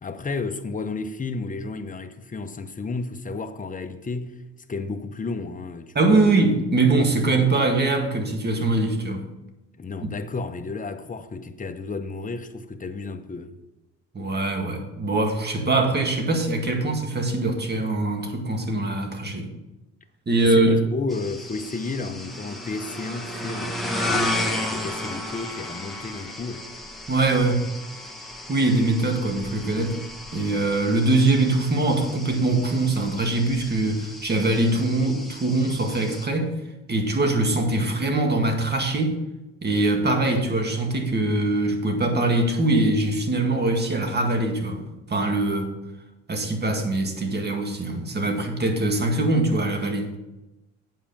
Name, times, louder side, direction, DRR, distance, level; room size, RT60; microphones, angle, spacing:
voice 1, 0.0-4.4 4.7-6.3 9.8-13.6 20.4-26.7, left 3 dB, 25° left, 0.9 m, -32 dB
voice 2, 6.0-9.2 10.0-10.1 14.1-19.5 20.3-20.8 27.1-27.7 28.5-30.0 30.3-36.5 36.9-39.2 39.6-44.8 45.1-45.7 46.3-50.1, right 2 dB, 35° right, 1.9 m, -22 dB
sound 1, 21.1-36.3, left 1 dB, ahead, 1.4 m, -34 dB
8.5 x 5.6 x 6.9 m
cardioid pair, 90°, 30 cm